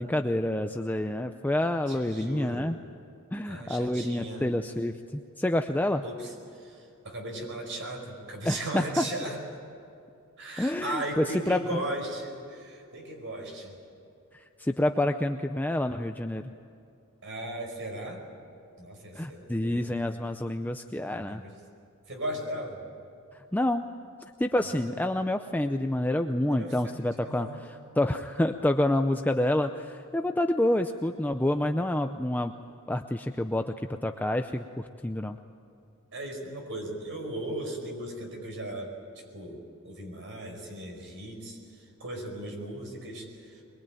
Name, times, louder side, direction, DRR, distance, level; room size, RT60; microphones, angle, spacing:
voice 1, 0.0-2.8 3.3-6.0 8.4-9.0 10.6-11.8 14.3-16.5 19.1-21.4 23.3-23.9 24.4-32.5 32.9-33.7 34.0-35.4, left 1 dB, 10° left, 6 dB, 0.5 m, -28 dB
voice 2, 1.9-2.7 3.4-4.5 6.0-9.4 10.4-13.8 17.2-18.2 18.8-20.0 21.1-21.5 22.1-22.8 24.6-24.8 26.5-27.6 36.1-43.6, right 1 dB, 60° right, 2 dB, 5.1 m, -37 dB
22.5 x 22.5 x 9.0 m, 2.6 s
head